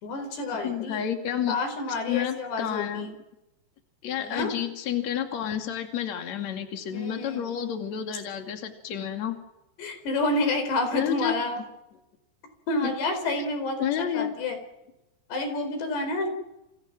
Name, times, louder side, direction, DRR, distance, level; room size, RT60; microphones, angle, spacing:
voice 1, 0.0-1.1 1.5-3.2 4.2-4.5 6.9-7.6 9.8-11.6 12.7-14.6 15.3-16.3, left 2 dB, 75° left, 7 dB, 6.5 m, -29 dB
voice 2, 0.6-1.6 1.9-3.1 4.0-9.4 10.9-11.3 12.8-12.9 13.8-14.4, left 9 dB, 45° left, 5 dB, 3.4 m, -30 dB
28.5 x 28.0 x 6.2 m, 0.94 s
omnidirectional pair, 4.9 m